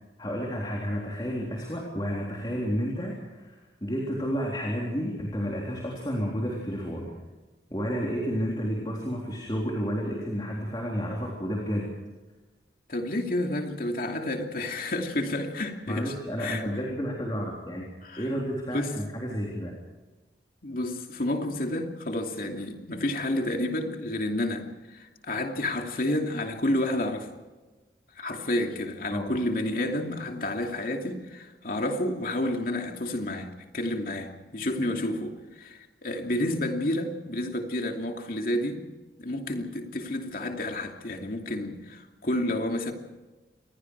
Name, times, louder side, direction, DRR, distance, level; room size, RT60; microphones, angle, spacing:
voice 1, 0.2-3.5 3.8-7.1 7.7-11.9 15.9-17.9 18.2-19.7 29.1-29.3, equal, 25° left, -2 dB, 3.7 m, -31 dB
voice 2, 12.9-16.6 18.0-18.3 18.7-18.9 20.6-27.3 28.2-38.8 39.2-42.9, left 1 dB, 50° left, 3 dB, 2.7 m, -30 dB
27.5 x 22.0 x 4.8 m, 1.2 s
head